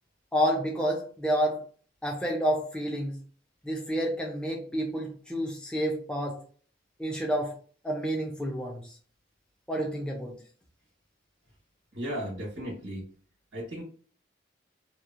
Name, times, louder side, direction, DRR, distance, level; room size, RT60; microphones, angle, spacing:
voice 1, 0.3-1.6 2.0-3.2 3.6-6.4 7.0-7.6 7.8-8.8 9.7-10.3, equal, 5° left, -1 dB, 0.4 m, -29 dB
voice 2, 11.9-13.0 13.5-13.8, equal, 80° right, -4 dB, 1.0 m, -35 dB
2.8 x 2.0 x 2.4 m, 0.43 s
head